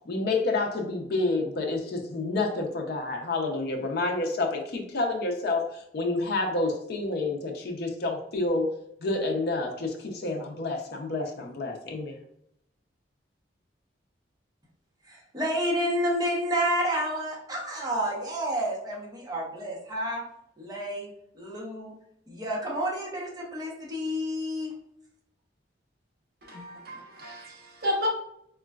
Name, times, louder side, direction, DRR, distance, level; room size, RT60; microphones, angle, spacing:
voice 1, 0.1-8.7 9.0-12.1, left 2 dB, 55° left, 0.5 m, -29 dB
voice 2, 15.1-20.2 20.6-21.1 21.3-21.9 22.3-24.7, equal, 20° right, 0.7 m, -30 dB
voice 3, 26.4-28.1, left 1 dB, 55° right, 0.8 m, -32 dB
3.7 x 2.2 x 2.3 m
head